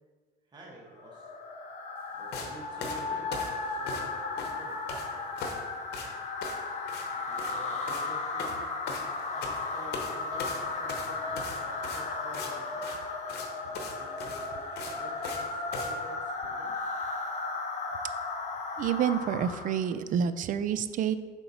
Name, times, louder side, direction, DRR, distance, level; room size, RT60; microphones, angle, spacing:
voice 1, 0.5-1.3 2.1-5.5 7.1-8.7 9.3-12.9 13.6-16.9, right 2 dB, 25° right, -4 dB, 1.2 m, -50 dB
sound 1, 1.0-19.9, left 3 dB, 45° left, 0.8 m, -35 dB
sound 2, 2.3-2.5 2.8-4.1 4.4-5.1 5.4-5.6 5.9-6.1 6.4-6.6 6.9-7.1 7.3-7.6 7.9-8.1 8.4-9.6 9.9-10.1 10.4-12.5 12.8-13.0 13.3-13.5 13.7-13.9 14.2-15.4 15.7-15.9, left 4 dB, 75° left, 1.0 m, -38 dB
voice 2, 18.8-21.2, right 8 dB, 50° right, 12 dB, 0.4 m, -28 dB
4.4 x 3.9 x 5.4 m, 1.5 s
cardioid pair, 110°, 17 cm